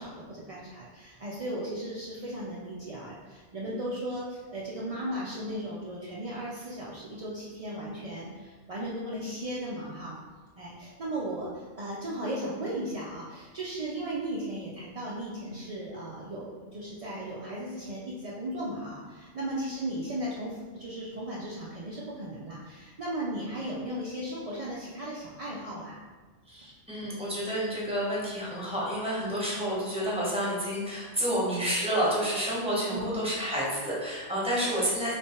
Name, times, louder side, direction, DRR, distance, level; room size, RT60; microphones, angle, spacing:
voice 1, 0.0-10.2 10.6-26.0 32.9-33.2, right 1 dB, 55° right, -6 dB, 0.4 m, -36 dB
voice 2, 26.5-35.1, equal, 5° right, -6 dB, 0.9 m, -29 dB
3.4 x 3.2 x 4.3 m, 1.4 s
omnidirectional pair, 1.4 m